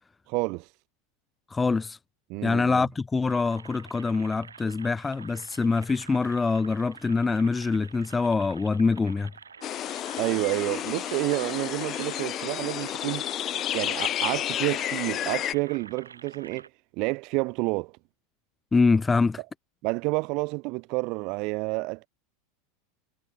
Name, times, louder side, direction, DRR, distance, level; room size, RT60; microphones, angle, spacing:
voice 1, 0.3-0.7 2.3-2.8 10.1-13.2 13.7-16.7 17.0-17.9 19.8-22.1, right 27 dB, 55° right, 1.3 m, -29 dB
voice 2, 1.5-2.0 2.4-9.3 18.7-19.4, left 4 dB, 15° left, 1.7 m, -24 dB
sound 1, 3.3-16.7, right 6 dB, 90° right, 2.2 m, -48 dB
sound 2, 9.6-15.5, left 11 dB, 40° left, 0.5 m, -31 dB
hypercardioid pair, 90°, 0 cm